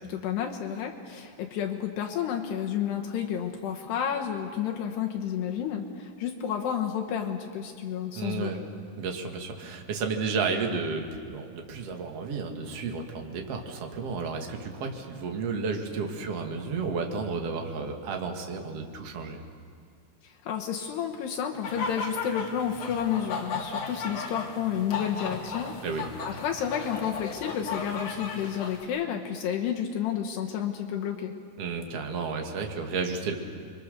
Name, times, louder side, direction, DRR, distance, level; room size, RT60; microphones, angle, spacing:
voice 1, 0.0-8.5 20.2-25.7 26.3-31.3, left 9 dB, 70° left, 2 dB, 3.0 m, -31 dB
voice 2, 8.1-8.6 9.0-19.4 25.8-26.1 31.6-33.4, right 4 dB, 45° right, 3 dB, 2.2 m, -32 dB
sound 1, 21.6-28.8, left 4 dB, 50° left, 3.2 m, -36 dB
29.5 x 23.5 x 6.8 m, 2.1 s
omnidirectional pair, 5.4 m